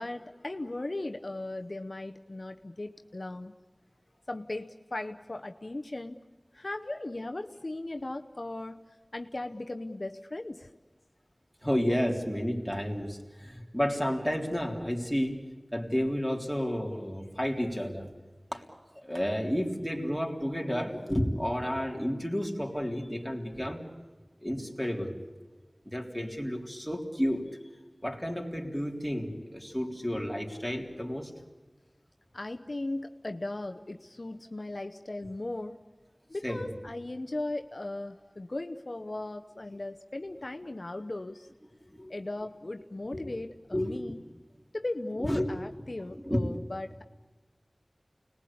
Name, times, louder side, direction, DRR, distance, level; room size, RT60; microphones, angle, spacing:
voice 1, 0.0-3.5 4.3-6.2 6.5-8.8 9.1-10.7 32.3-35.8 36.3-41.5 42.1-44.2 44.7-47.0, left 2 dB, 55° left, 5 dB, 0.8 m, -37 dB
voice 2, 11.6-15.4 15.7-18.1 18.5-18.6 19.0-23.9 24.4-25.2 25.9-27.4 28.0-31.3 36.4-36.7 41.9-42.1 43.1-43.4 43.7-44.0 45.2-45.5 46.2-46.5, equal, ahead, 0 dB, 3.7 m, -31 dB
29.5 x 20.0 x 8.6 m, 1.3 s
wide cardioid pair, 55°, 0 cm